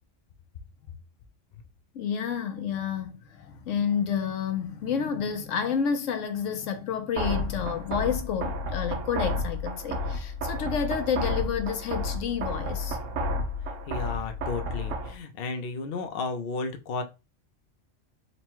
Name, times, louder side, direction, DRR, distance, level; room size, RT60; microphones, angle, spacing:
voice 1, 1.9-13.0, left 7 dB, 80° left, 1.1 m, -30 dB
sound 1, 7.2-15.2, left 1 dB, 80° right, 1.2 m, -31 dB
voice 2, 13.9-17.0, left 4 dB, 60° left, 0.8 m, -33 dB
4.1 x 2.2 x 4.4 m
omnidirectional pair, 1.3 m